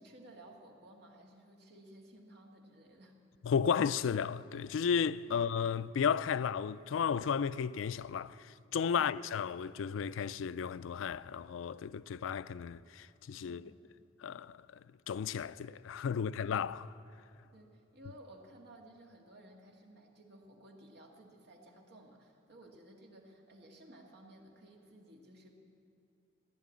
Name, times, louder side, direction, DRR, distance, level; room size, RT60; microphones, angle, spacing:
voice 1, 0.0-3.2 5.3-5.4 8.9-9.2 13.4-13.7 16.2-16.6 17.4-25.6, right 1 dB, 55° right, 2.0 m, -56 dB
voice 2, 3.4-13.6 14.2-14.6 15.1-16.9, left 7 dB, 75° left, 0.4 m, -33 dB
16.0 x 10.5 x 8.4 m
head